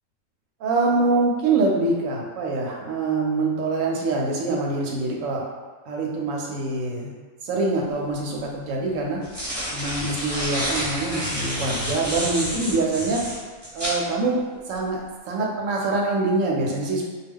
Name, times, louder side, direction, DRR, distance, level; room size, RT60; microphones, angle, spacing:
voice 1, 0.6-5.4 5.9-7.1 7.4-9.2 9.7-13.2 13.7-14.4 14.7-15.0 15.3-17.0, right 3 dB, 75° right, -1 dB, 0.9 m, -24 dB
sound 1, 7.9-8.0 9.0-14.0, equal, 15° right, 0.7 m, -29 dB
2.2 x 2.2 x 3.5 m, 1.4 s
omnidirectional pair, 1.5 m